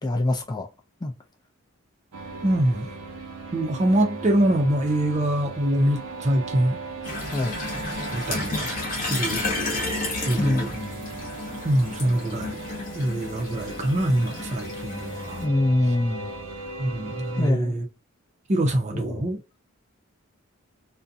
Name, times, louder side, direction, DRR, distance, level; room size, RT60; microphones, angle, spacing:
voice 1, 0.0-0.7 1.0-1.1 7.3-7.6 10.4-11.0 15.4-16.3 17.4-17.8 18.9-19.3, left 1 dB, 20° left, 0.4 m, -25 dB
sound 1, 2.1-17.5, right 3 dB, 85° right, 0.7 m, -38 dB
voice 2, 2.4-2.9 3.5-6.8 8.1-9.4 10.3-10.7 11.6-12.6 12.9-15.5 16.8-17.8 18.5-19.4, right 1 dB, 30° right, 0.5 m, -24 dB
sound 2, 7.0-15.4, left 2 dB, 40° left, 0.8 m, -32 dB
2.5 x 2.1 x 2.6 m
head